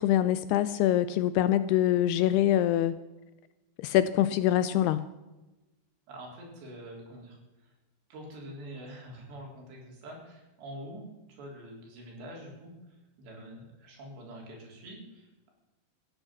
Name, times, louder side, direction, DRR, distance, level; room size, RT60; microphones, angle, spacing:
voice 1, 0.0-3.0 3.8-5.0, left 12 dB, 80° left, 14 dB, 2.4 m, -24 dB
voice 2, 6.1-7.7 8.1-11.0 11.3-12.7 13.2-15.5, right 1 dB, 75° right, -1 dB, 6.2 m, -45 dB
15.0 x 9.7 x 7.4 m, 1.1 s
omnidirectional pair, 5.0 m